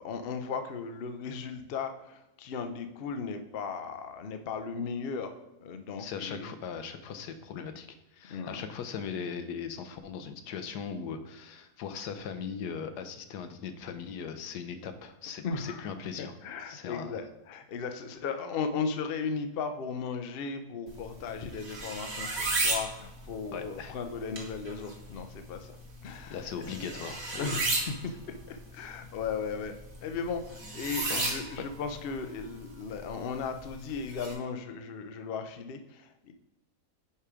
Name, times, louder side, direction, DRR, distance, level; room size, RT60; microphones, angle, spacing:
voice 1, 0.0-5.3 5.6-6.5 8.3-8.7 15.4-15.9 16.2-25.8 26.0-26.8 27.3-28.1 28.5-29.8 30.0-36.3, left 5 dB, 60° left, 7 dB, 0.6 m, -36 dB
voice 2, 6.0-7.9 8.1-16.3 16.7-17.2 23.5-23.9 26.3-27.6 31.1-31.3, left 6 dB, 85° left, 9 dB, 1.3 m, -39 dB
sound 1, 20.9-34.3, right 2 dB, 45° right, 1.4 m, -36 dB
5.6 x 4.8 x 5.0 m, 0.96 s
omnidirectional pair, 1.7 m